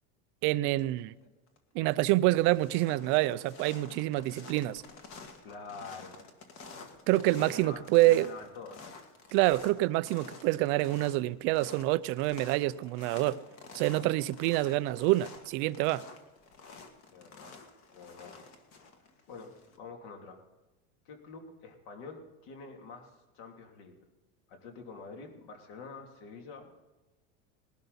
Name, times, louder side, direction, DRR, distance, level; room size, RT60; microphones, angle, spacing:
voice 1, 0.4-1.1 1.7-4.8 7.1-8.3 9.3-13.4 13.7-16.1, right 17 dB, 35° right, 0.4 m, -27 dB
sound 1, 1.2-1.6 1.9-19.8, left 4 dB, 40° left, 2.0 m, -50 dB
voice 2, 5.4-6.2 7.3-8.8 17.1-17.6 17.9-18.4 19.3-20.4 21.0-24.0 24.5-26.8, left 4 dB, 55° left, 2.9 m, -47 dB
20.5 x 12.0 x 4.1 m
supercardioid pair, 165°, 35 cm